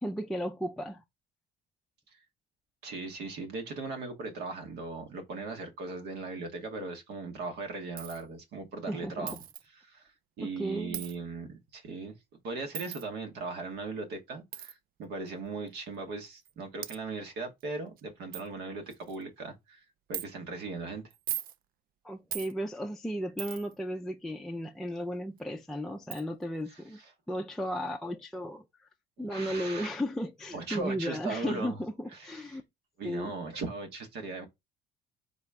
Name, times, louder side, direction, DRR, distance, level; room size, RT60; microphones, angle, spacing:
voice 1, 0.0-1.0 8.9-9.3 10.4-11.0 22.0-27.0 27.3-28.9 29.2-32.6 33.0-33.3, equal, ahead, 0.4 m, -35 dB
voice 2, 2.8-9.4 9.8-10.0 10.4-12.2 12.4-19.8 20.1-21.0 26.7-27.1 29.2-29.9 30.5-31.8 32.1-32.6 33.0-34.5, right 3 dB, 80° right, 1.2 m, -38 dB
Coin (dropping), 8.0-8.2 9.3-9.6 10.9-11.2 12.7-13.0 14.5-14.7 15.7-15.8 16.5-16.6 16.8-17.0 17.6-17.7 18.0-18.1 18.3-18.5 18.9-19.2 20.1-20.3 21.1-21.6 22.3-22.5 23.4-23.7 25.4-25.5 26.1-26.2, right 11 dB, 60° right, 0.4 m, -38 dB
4.0 x 3.1 x 3.5 m
cardioid pair, 110°, 17 cm